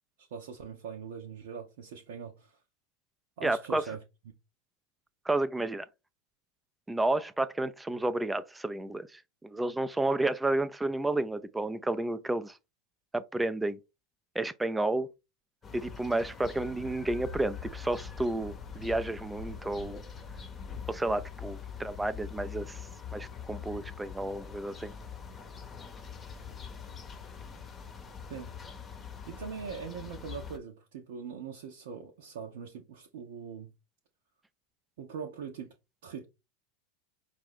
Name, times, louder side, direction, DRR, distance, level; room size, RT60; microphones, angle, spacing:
voice 1, 0.2-2.6 3.4-4.0 28.3-28.5 29.3-33.7 35.0-35.7 36.0-36.2, right 6 dB, 60° right, 0.7 m, -42 dB
voice 2, 3.4-3.8 5.3-5.9 6.9-12.5 13.1-13.8 14.4-15.1 15.7-20.0 20.9-22.8 23.1-24.9, right 2 dB, 10° right, 0.5 m, -31 dB
sound 1, 15.6-30.6, left 6 dB, 25° left, 0.9 m, -43 dB
5.4 x 2.5 x 3.4 m
figure-of-eight pair, 85°, 0 cm